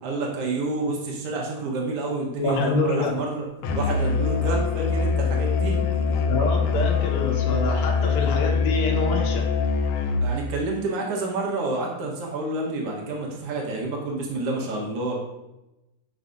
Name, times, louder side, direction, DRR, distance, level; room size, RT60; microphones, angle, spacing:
voice 1, 0.0-3.5 3.7-6.1 10.2-15.2, right 2 dB, 80° right, -2 dB, 1.3 m, -29 dB
voice 2, 2.4-3.1 6.3-9.5, left 3 dB, 70° left, -1 dB, 3.0 m, -26 dB
Musical instrument, 3.6-10.4, left 5 dB, 85° left, 1.8 m, -23 dB
11.5 x 5.7 x 2.6 m, 0.97 s
omnidirectional pair, 4.6 m